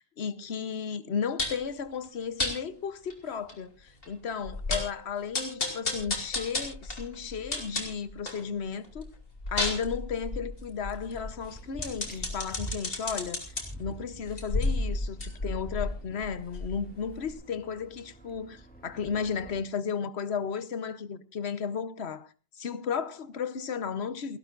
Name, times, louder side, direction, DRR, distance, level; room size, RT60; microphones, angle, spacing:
voice 1, 0.0-9.1 9.5-13.4 13.8-22.3 22.5-24.4, left 6 dB, 85° left, 1.2 m, -34 dB
Metal-sticks, 1.4-1.7 2.4-2.6 3.1-3.2 3.5-3.6 4.0-4.1 4.5-5.0 5.3-8.4 8.8-13.6 14.2-16.9 17.3-17.4, left 2 dB, 65° left, 3.2 m, -32 dB
sound 1, 11.1-19.6, right 1 dB, 10° left, 2.7 m, -47 dB
29.0 x 12.0 x 2.5 m
omnidirectional pair, 1.1 m